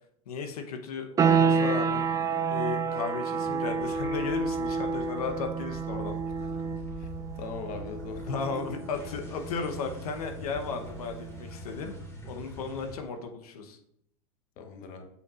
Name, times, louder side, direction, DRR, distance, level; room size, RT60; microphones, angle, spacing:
voice 1, 0.3-2.1 2.5-6.5 8.3-11.9 12.3-13.8, left 5 dB, 80° left, 5 dB, 0.9 m, -35 dB
sound 1, 1.2-11.7, right 5 dB, 15° right, 0.4 m, -30 dB
sound 2, 1.8-2.6 2.9-13.0, left 1 dB, 15° left, 2.2 m, -45 dB
voice 2, 7.4-8.8 14.6-15.1, left 4 dB, 45° left, 5 dB, 1.0 m, -40 dB
8.2 x 4.6 x 2.5 m, 0.73 s
hypercardioid pair, 115°, 19 cm